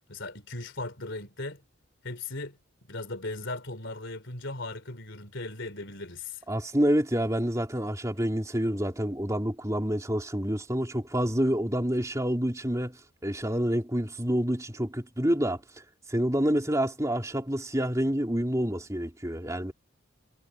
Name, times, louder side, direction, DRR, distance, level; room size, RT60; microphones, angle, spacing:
voice 1, 0.1-1.6 2.0-2.6 2.9-6.4, left 2 dB, 55° left, 4.0 m, -37 dB
voice 2, 6.5-15.6 16.1-19.7, equal, 15° right, 3.4 m, -28 dB
head